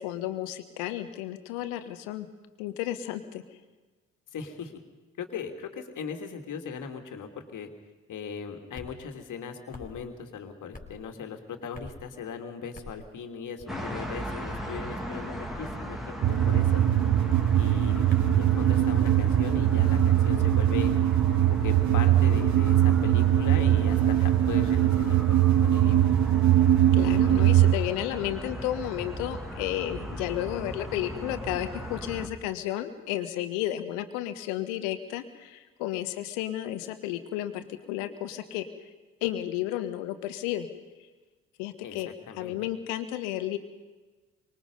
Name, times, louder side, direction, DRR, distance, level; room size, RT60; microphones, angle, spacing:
voice 1, 0.0-2.3 2.6-3.4 26.9-38.6 39.2-40.7 41.6-43.6, left 13 dB, 70° left, 10 dB, 1.6 m, -32 dB
voice 2, 4.3-4.7 5.2-7.7 8.1-16.8 17.6-18.1 18.4-21.1 21.5-26.1 41.8-42.6, left 6 dB, 55° left, 5 dB, 2.7 m, -39 dB
sound 1, 8.7-9.0 9.7-10.0 10.7-11.0 11.7-12.0 12.7-13.0 13.6-13.9 14.5-14.8 15.4-15.7 16.4-16.7 17.3-17.5 18.1-18.4 19.0-19.3 20.0-20.3 20.9-21.1, left 3 dB, 20° left, 4.3 m, -45 dB
sound 2, 13.7-32.3, right 1 dB, ahead, 3.0 m, -38 dB
sound 3, 16.2-27.7, right 12 dB, 50° right, 1.0 m, -21 dB
25.0 x 22.5 x 5.5 m, 1.2 s
figure-of-eight pair, 40°, 38 cm